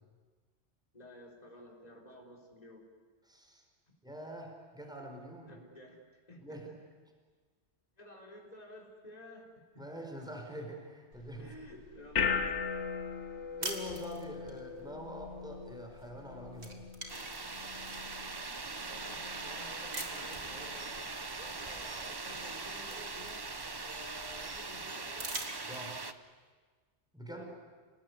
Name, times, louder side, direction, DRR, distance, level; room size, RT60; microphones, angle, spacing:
voice 1, 0.9-2.8 5.5-6.0 6.3-6.4 8.0-9.5 11.4-12.8 18.9-20.9 21.4-23.4 23.8-25.4 27.3-27.5, left 1 dB, 35° left, -2 dB, 4.4 m, -52 dB
voice 2, 3.2-3.6 4.0-5.5 6.4-6.7 9.8-11.5 13.6-16.8 25.7-25.9 27.1-27.5, right 1 dB, 5° right, 2 dB, 4.4 m, -45 dB
sound 1, 11.1-24.7, left 6 dB, 85° left, 1.7 m, -41 dB
sound 2, 13.6-14.6 16.0-16.2 16.5-18.2 18.8-18.9 19.9-20.5 22.0-22.1 22.4-24.0 25.1-26.2, right 2 dB, 70° right, 2.9 m, -43 dB
sound 3, 17.1-26.1, right 3 dB, 25° right, 0.8 m, -41 dB
29.5 x 19.0 x 9.7 m, 1.5 s
omnidirectional pair, 1.2 m